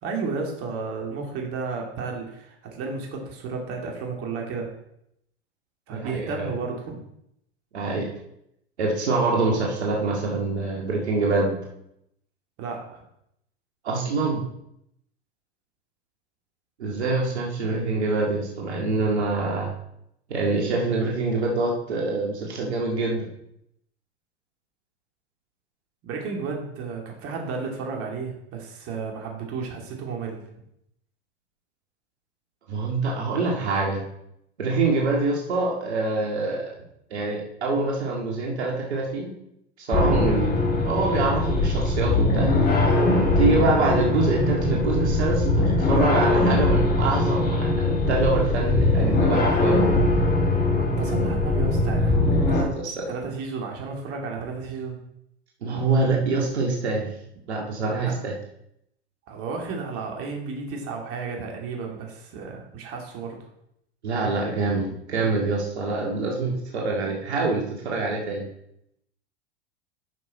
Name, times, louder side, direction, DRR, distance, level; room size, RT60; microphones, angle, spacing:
voice 1, 0.0-4.7 5.9-7.0 12.6-13.0 26.0-30.4 50.8-55.0 58.0-58.1 59.3-63.4, right 4 dB, 40° right, 0 dB, 2.6 m, -33 dB
voice 2, 5.9-6.5 7.7-8.1 8.8-11.6 13.8-14.5 16.8-19.7 20.3-23.3 32.7-34.0 34.6-36.7 37.1-39.3 39.8-40.6 40.8-42.9 43.4-49.8 52.8-53.0 55.6-57.1 57.5-58.3 64.0-68.5, right 3 dB, 75° right, -1 dB, 2.2 m, -25 dB
alien work house - from tape, 39.9-52.6, left 2 dB, 30° left, 3.0 m, -21 dB
10.5 x 6.2 x 4.3 m, 0.76 s
hypercardioid pair, 95°, 33 cm